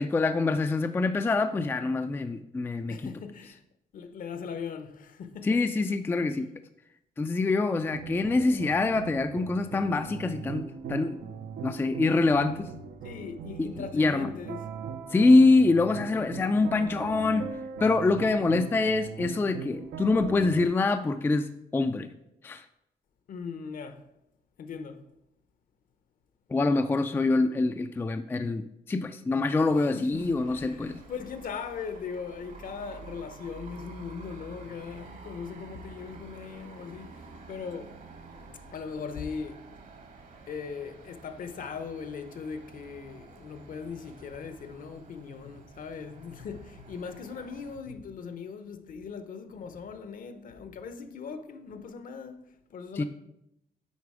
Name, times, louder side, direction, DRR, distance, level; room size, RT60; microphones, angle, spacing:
voice 1, 0.0-3.0 5.4-6.5 7.2-11.2 11.6-12.7 13.9-14.3 15.1-17.5 17.8-22.1 22.4-22.6 26.5-30.9 53.0-53.1, left 3 dB, 15° left, 0.3 m, -25 dB
voice 2, 2.9-3.6 3.9-5.6 13.0-14.7 23.3-24.1 24.6-25.0 29.9-38.0 38.4-39.7 40.5-53.0, left 5 dB, 60° left, 0.8 m, -39 dB
sound 1, 7.9-20.7, right 6 dB, 75° right, 0.6 m, -40 dB
sound 2, 30.1-47.8, right 3 dB, 55° right, 1.2 m, -49 dB
9.5 x 4.1 x 4.8 m
cardioid pair, 135°, 16 cm